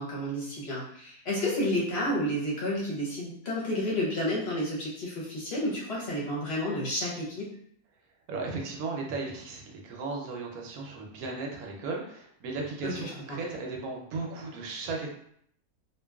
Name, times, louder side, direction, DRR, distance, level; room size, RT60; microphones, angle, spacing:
voice 1, 0.0-7.5 12.8-13.4, left 1 dB, 55° left, -5 dB, 0.8 m, -31 dB
voice 2, 8.3-15.1, right 3 dB, 70° right, 0 dB, 1.0 m, -36 dB
2.8 x 2.2 x 2.2 m, 0.68 s
omnidirectional pair, 1.7 m